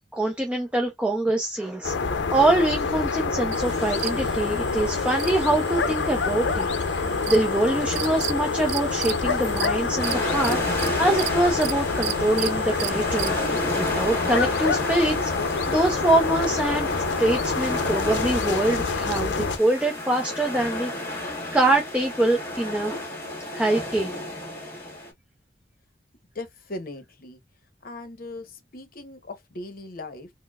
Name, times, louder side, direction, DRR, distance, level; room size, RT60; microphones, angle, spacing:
voice 1, 0.1-13.4 13.7-16.9 17.2-21.3 21.5-23.0 23.5-24.2, right 1 dB, 5° right, 0.5 m, -24 dB
sound 1, 1.8-19.6, left 4 dB, 85° left, 0.6 m, -27 dB
sound 2, 3.5-13.5, right 13 dB, 70° right, 0.4 m, -36 dB
sound 3, 10.0-25.1, left 1 dB, 15° left, 1.6 m, -31 dB
voice 2, 26.3-27.4 27.8-30.3, left 2 dB, 55° left, 0.8 m, -38 dB
4.3 x 2.1 x 2.3 m
head